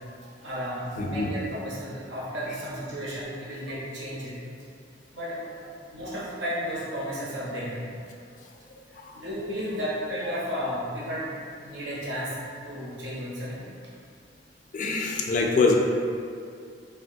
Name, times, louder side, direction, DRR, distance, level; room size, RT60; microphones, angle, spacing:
voice 1, 0.4-4.4 5.1-5.4 5.9-7.9 9.1-11.4 11.6-13.7, equal, 70° right, -7 dB, 0.7 m, -33 dB
voice 2, 1.0-1.3 9.0-9.1 14.7-15.7, left 3 dB, 45° left, 1 dB, 0.3 m, -24 dB
3.3 x 2.2 x 2.5 m, 2.3 s
head